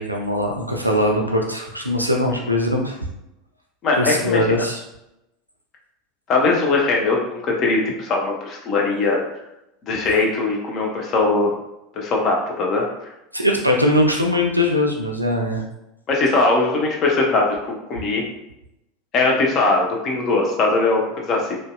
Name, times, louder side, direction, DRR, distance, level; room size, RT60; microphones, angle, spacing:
voice 1, 0.0-3.0 4.0-4.8 13.3-15.6, left 1 dB, 90° right, 0 dB, 0.3 m, -21 dB
voice 2, 3.8-4.5 6.3-9.2 9.8-11.5 12.0-13.1 16.1-17.6 17.9-18.2 19.1-21.6, left 3 dB, 40° left, -1 dB, 0.6 m, -20 dB
2.7 x 2.2 x 2.2 m, 0.87 s
figure-of-eight pair, 75°, 0 cm